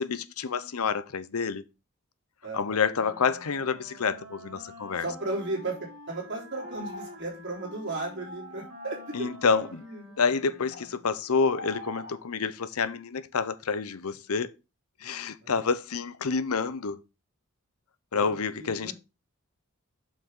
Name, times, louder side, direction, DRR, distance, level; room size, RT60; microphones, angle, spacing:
voice 1, 0.0-1.6 2.5-5.0 9.1-9.8 10.2-14.5 15.0-17.0 18.1-18.9, left 5 dB, 85° left, 0.7 m, -28 dB
voice 2, 2.4-2.9 4.9-10.1 15.4-15.6 18.1-18.9, right 2 dB, 55° right, 3.5 m, -36 dB
Wind instrument woodwind instrument, 2.9-11.2, equal, 90° right, 2.0 m, -48 dB
sound 1, 6.5-7.2 7.6-7.7 8.2-9.2 10.7-10.9 11.3-12.2, equal, 55° left, 3.2 m, -42 dB
7.2 x 5.8 x 3.8 m
head